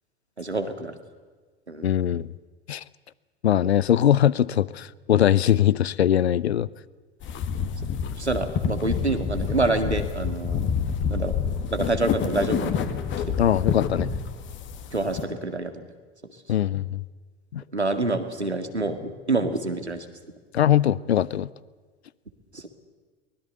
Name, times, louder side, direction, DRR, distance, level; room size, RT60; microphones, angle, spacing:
voice 1, 0.4-1.0 1.7-2.0 8.2-10.6 11.1-11.4 11.7-12.8 13.3-13.4 14.9-15.9 17.7-20.1 22.5-22.6, right 2 dB, 90° right, 8 dB, 2.0 m, -27 dB
voice 2, 1.8-2.3 2.7-2.8 3.4-6.7 13.4-14.1 16.5-17.0 17.5-17.6 20.5-21.5, left 10 dB, 75° left, 21 dB, 0.8 m, -21 dB
sound 1, 7.2-15.2, left 7 dB, 35° left, 2.3 m, -28 dB
23.0 x 20.0 x 8.0 m, 1.4 s
figure-of-eight pair, 80°, 32 cm